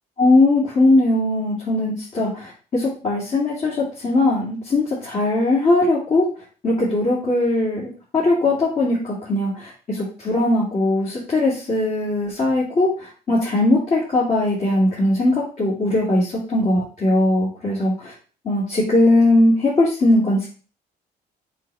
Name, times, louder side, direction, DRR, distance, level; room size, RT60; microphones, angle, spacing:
voice 1, 0.2-6.2 6.6-18.1 18.4-20.5, left 2 dB, 40° left, -7 dB, 2.9 m, -19 dB
6.2 x 5.8 x 3.5 m, 0.39 s
cardioid pair, 110°, 17 cm